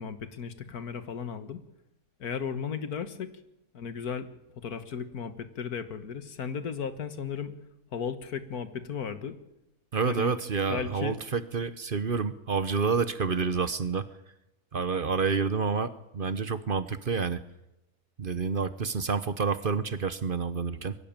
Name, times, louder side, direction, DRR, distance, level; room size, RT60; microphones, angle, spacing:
voice 1, 0.0-1.6 2.2-3.3 3.7-4.3 4.6-7.5 7.9-9.4 10.0-10.3 10.7-11.1, left 6 dB, 75° left, 10 dB, 1.9 m, -35 dB
voice 2, 9.9-14.1 14.7-17.4 18.2-20.9, right 5 dB, 40° right, 13 dB, 0.9 m, -29 dB
22.5 x 16.0 x 8.9 m, 0.91 s
omnidirectional pair, 1.6 m